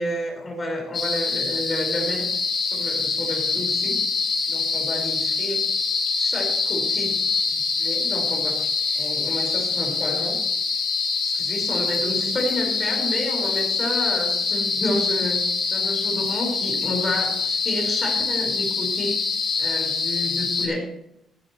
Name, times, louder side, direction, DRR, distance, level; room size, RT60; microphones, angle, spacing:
voice 1, 0.0-2.3 2.6-4.0 4.5-5.6 6.2-7.1 7.8-8.7 9.0-10.4 11.2-15.4 15.7-19.2 19.6-20.9, left 1 dB, 20° left, 0 dB, 4.8 m, -30 dB
sound 1, 0.9-20.7, left 4 dB, 45° left, 4.3 m, -25 dB
16.0 x 12.0 x 3.1 m, 0.80 s
cardioid pair, 135°, 0 cm